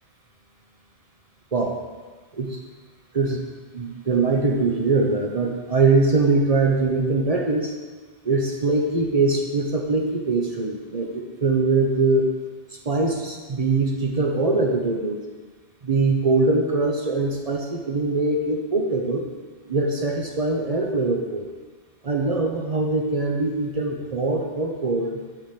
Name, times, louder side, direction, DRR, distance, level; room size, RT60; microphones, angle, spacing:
voice 1, 1.5-1.8 2.4-2.6 3.1-3.4 3.7-7.7 8.2-12.3 12.8-15.2 15.8-19.2 19.7-21.5 22.0-25.2, right 3 dB, 40° right, 1 dB, 0.6 m, -22 dB
7.9 x 3.5 x 5.8 m, 1.4 s
omnidirectional pair, 1.2 m